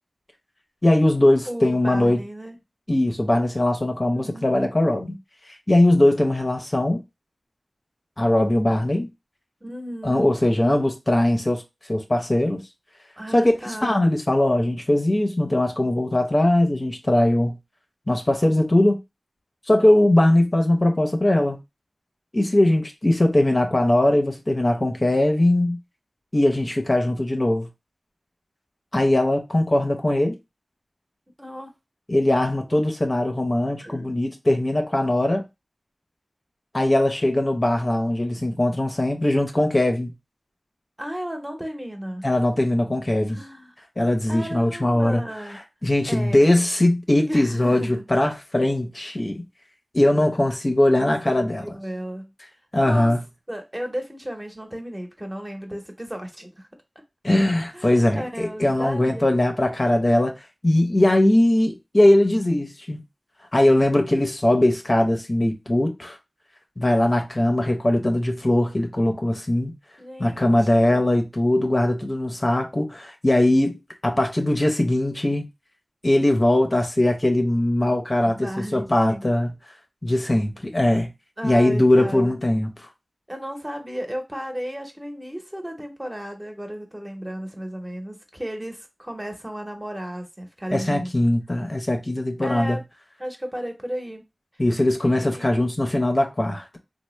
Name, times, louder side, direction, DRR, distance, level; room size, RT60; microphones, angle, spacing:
voice 1, 0.8-2.2 2.9-5.1 5.7-7.0 8.2-9.1 10.0-11.6 11.9-12.6 13.3-17.6 18.1-19.0 19.7-21.6 22.3-25.8 26.3-27.7 28.9-30.4 32.1-35.4 36.7-40.1 42.2-43.4 44.0-45.2 45.8-49.4 49.9-51.6 52.7-53.2 57.2-60.3 60.6-63.0 63.5-66.2 66.8-69.7 70.2-73.8 74.0-75.5 76.0-79.5 80.0-81.1 81.4-82.7 90.7-92.8 94.6-96.8, left 1 dB, 40° left, 0.6 m, -20 dB
voice 2, 1.4-2.6 3.9-4.5 9.6-10.3 13.2-13.9 31.4-31.7 33.8-34.1 41.0-42.3 43.3-43.7 44.3-45.6 46.1-46.5 47.3-48.0 51.2-52.3 52.8-53.1 53.5-56.7 57.7-59.3 70.0-71.0 78.2-79.3 81.4-82.3 83.3-91.1 92.4-92.8 93.2-94.2 95.0-95.5, equal, 20° right, 0.8 m, -34 dB
3.2 x 2.0 x 3.0 m
wide cardioid pair, 50°, 0 cm